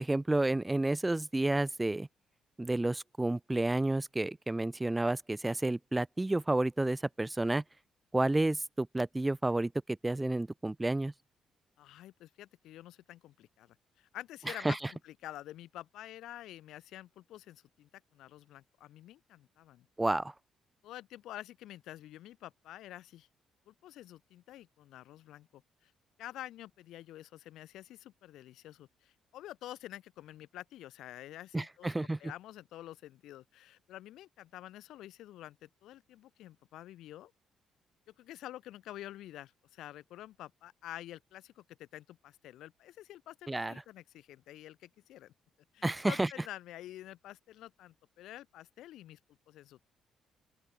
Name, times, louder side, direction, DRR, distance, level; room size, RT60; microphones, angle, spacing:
voice 1, 0.0-2.1 2.6-7.6 8.1-9.7 10.0-11.1 14.5-14.8 20.0-20.3 31.5-32.2 43.5-43.7 45.8-46.3, right 2 dB, 15° right, 0.7 m, -30 dB
voice 2, 11.8-19.9 20.8-23.3 23.7-25.9 26.2-31.9 32.2-37.3 38.2-45.3 45.7-49.2 49.5-49.9, left 14 dB, 85° left, 1.4 m, -48 dB
open air
cardioid pair, 90°, 0 cm